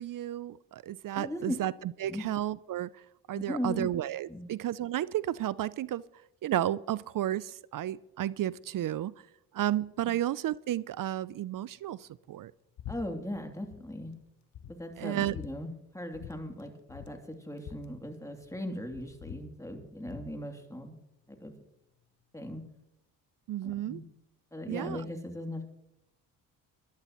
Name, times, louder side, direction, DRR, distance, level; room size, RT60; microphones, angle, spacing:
voice 1, 0.0-1.7 2.0-2.9 3.3-6.0 6.4-9.1 9.5-12.5 15.0-15.3 23.5-24.0 24.7-25.0, right 12 dB, 50° right, 20 dB, 0.5 m, -32 dB
voice 2, 1.1-1.6 2.1-2.3 3.3-3.9 4.3-4.4 12.9-14.1 14.7-21.0 21.3-21.5 22.3-22.6 23.6-24.0 24.5-25.7, left 1 dB, 5° left, 4 dB, 2.9 m, -38 dB
sound 1, 12.8-13.0 13.3-13.8 14.2-14.3 14.5-15.5 16.1-16.3 16.6-16.7 16.9-18.6 18.9-20.3, left 10 dB, 65° left, 1.1 m, -45 dB
22.5 x 11.5 x 3.1 m, 0.86 s
supercardioid pair, 55°, 43 cm